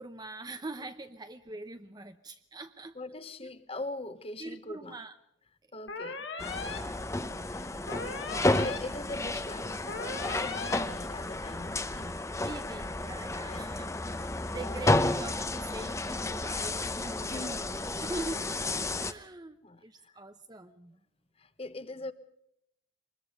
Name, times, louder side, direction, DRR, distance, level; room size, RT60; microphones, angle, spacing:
voice 1, 0.0-3.0 3.4-3.5 4.4-5.1 6.6-7.4 7.7-7.9 12.4-17.6 18.0-18.6 18.9-21.0, right 2 dB, 20° right, 0.8 m, -43 dB
voice 2, 2.9-5.0 5.7-6.3 7.4-7.7 8.0-12.2 13.5-13.7 14.6-14.8 17.3-17.9 19.6-20.2 21.4-22.1, left 2 dB, 30° left, 1.2 m, -42 dB
sound 1, 5.9-6.8 7.9-8.8 9.9-10.8, left 4 dB, 75° left, 2.7 m, -38 dB
sound 2, 6.4-19.1, left 2 dB, 15° left, 0.9 m, -32 dB
24.5 x 21.0 x 5.2 m
head